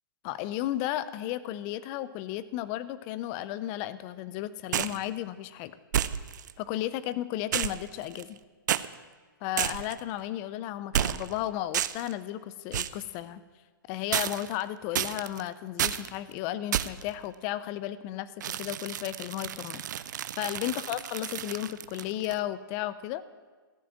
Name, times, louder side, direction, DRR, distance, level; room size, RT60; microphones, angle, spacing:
voice 1, 0.2-5.7 6.6-8.4 9.4-13.4 13.9-19.8 20.4-23.2, left 13 dB, 20° left, 16 dB, 0.4 m, -34 dB
sound 1, 4.7-5.0 5.9-6.5 7.5-8.4 8.7-8.9 9.6-10.0 10.9-11.4 11.7-12.1 12.7-13.0 14.1-14.6 14.9-15.4 15.8-16.1 16.7-17.1 18.4-22.4, right 10 dB, 55° right, 0.5 m, -31 dB
14.0 x 6.0 x 8.7 m, 1.4 s
hypercardioid pair, 165°, 12 cm